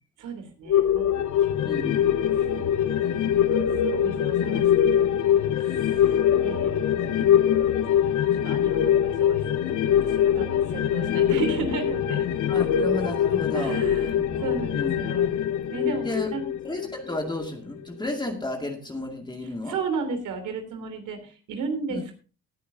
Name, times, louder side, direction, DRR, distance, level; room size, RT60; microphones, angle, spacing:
voice 1, 0.2-1.5 2.4-2.5 3.3-3.4 3.9-6.7 7.3-7.7 8.0-8.2 8.4-12.2 12.6-12.7 13.5-14.1 14.4-15.3 15.7-16.5 19.7-22.0, right 4 dB, 85° right, 6 dB, 3.4 m, -34 dB
sound 1, 0.7-17.5 17.8-17.9, left 9 dB, 80° left, 1.1 m, -23 dB
voice 2, 1.7-2.1 12.5-13.8 14.2-15.4 16.0-16.3 16.6-19.8 21.9-22.0, left 2 dB, 15° left, 2 dB, 2.3 m, -33 dB
19.0 x 10.0 x 2.8 m, 0.36 s
cardioid pair, 90°, 30 cm